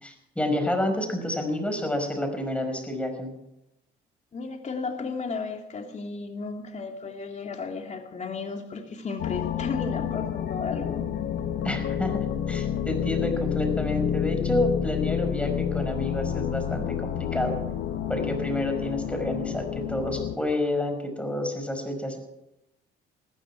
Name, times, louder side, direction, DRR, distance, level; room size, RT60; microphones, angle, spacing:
voice 1, 0.0-3.3 11.6-17.6 18.1-22.2, left 1 dB, 5° left, 5 dB, 5.2 m, -29 dB
voice 2, 4.3-11.1, left 4 dB, 40° left, 3 dB, 2.9 m, -34 dB
sound 1, 9.2-20.3, left 9 dB, 65° left, 1.5 m, -29 dB
19.5 x 15.0 x 4.7 m, 0.89 s
supercardioid pair, 80°, 19 cm